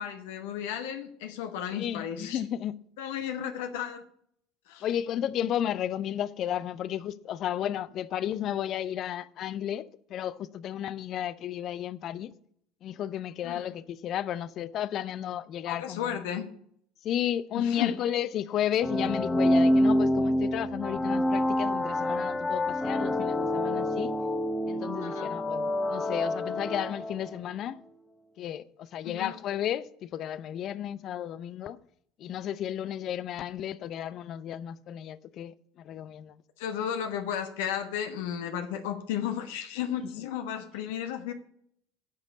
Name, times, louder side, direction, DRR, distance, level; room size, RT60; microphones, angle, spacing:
voice 1, 0.0-2.4 3.0-4.0 4.7-4.9 13.4-13.7 15.7-16.5 17.5-18.0 25.0-25.3 29.0-29.3 36.6-41.3, left 9 dB, 75° left, 1.1 m, -34 dB
voice 2, 1.7-2.8 4.8-12.3 12.8-16.2 17.0-24.1 24.7-27.8 28.4-31.8 32.2-36.3, left 10 dB, 50° left, 0.6 m, -33 dB
sound 1, 18.8-27.4, left 1 dB, 15° left, 1.0 m, -27 dB
9.3 x 5.2 x 8.1 m
hypercardioid pair, 75°, 0 cm